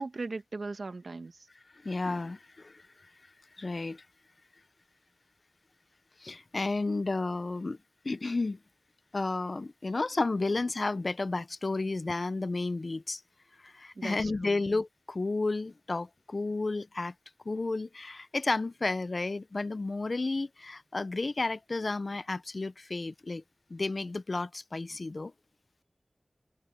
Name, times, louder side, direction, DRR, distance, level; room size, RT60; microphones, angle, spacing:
voice 1, 0.0-1.4 14.0-14.6, right 3 dB, 85° right, 1.5 m, -38 dB
voice 2, 1.8-2.8 3.6-4.0 6.2-7.8 8.0-8.6 9.1-13.2 13.6-17.1 17.5-23.4 23.7-25.3, left 3 dB, 65° left, 0.7 m, -32 dB
wide cardioid pair, 40°, 0 cm